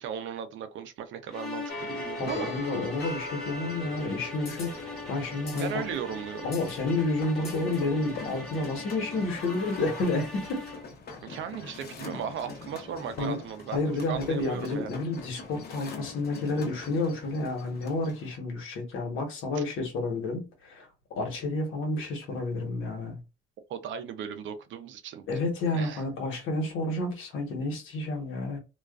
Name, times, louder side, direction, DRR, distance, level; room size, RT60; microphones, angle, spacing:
voice 1, 0.0-2.5 5.5-6.5 11.2-14.9 19.5-19.6 23.7-25.2 25.7-26.0, right 8 dB, 75° right, 0.5 m, -36 dB
sound 1, 1.3-11.0, left 2 dB, ahead, 1.0 m, -41 dB
sound 2, 1.7-18.4, left 3 dB, 55° left, 0.8 m, -43 dB
voice 2, 2.2-5.8 6.4-10.6 13.2-13.4 13.7-20.9 21.2-23.2 25.3-28.6, left 2 dB, 85° left, 1.1 m, -30 dB
2.3 x 2.2 x 2.3 m
cardioid pair, 90°, 20 cm